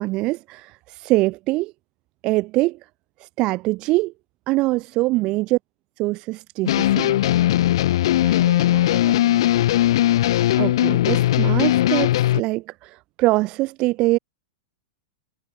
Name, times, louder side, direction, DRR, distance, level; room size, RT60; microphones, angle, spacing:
voice 1, 0.0-1.7 2.2-2.9 3.2-4.1 4.5-5.6 6.0-7.2 10.2-10.3 10.6-14.2, right 20 dB, 30° right, 1.0 m, -23 dB
voice 2, 5.1-5.5 8.0-9.8, right 13 dB, 60° right, 5.8 m, -42 dB
sound 1, 6.7-12.4, left 13 dB, 60° left, 0.7 m, -19 dB
supercardioid pair, 170°, 3 cm